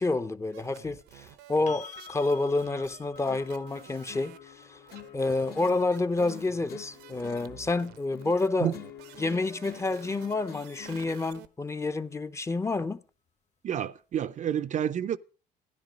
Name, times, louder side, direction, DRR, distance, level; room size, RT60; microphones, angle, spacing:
voice 1, 0.0-4.8 5.1-8.7 9.2-13.0, left 3 dB, 15° left, 0.7 m, -29 dB
sound 1, 0.5-11.5, right 11 dB, 85° right, 1.0 m, -52 dB
sound 2, 1.7-9.5 12.3-12.4, left 6 dB, 45° left, 1.4 m, -51 dB
sound 3, 3.3-11.3, left 12 dB, 70° left, 2.1 m, -48 dB
voice 2, 13.6-15.2, right 9 dB, 45° right, 0.6 m, -29 dB
13.0 x 11.0 x 5.1 m
cardioid pair, 110°, 17 cm